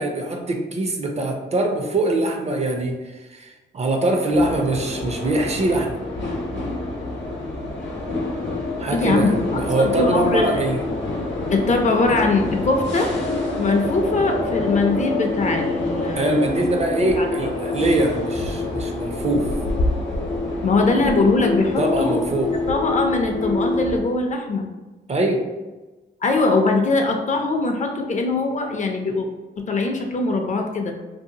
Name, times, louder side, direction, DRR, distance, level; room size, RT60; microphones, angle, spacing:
voice 1, 0.0-6.0 8.8-10.8 16.2-19.5 21.8-22.5 25.1-25.4, right 1 dB, 35° right, 3 dB, 0.4 m, -22 dB
sound 1, 4.3-24.0, left 2 dB, 70° left, 0.7 m, -26 dB
voice 2, 8.9-9.3 9.8-10.5 11.5-13.1 13.6-16.5 17.0-17.5 20.6-22.2 22.7-24.7 26.2-29.3 29.6-30.9, left 3 dB, 40° left, 3 dB, 0.4 m, -21 dB
2.7 x 2.5 x 2.7 m, 1.2 s
cardioid pair, 95°, 19 cm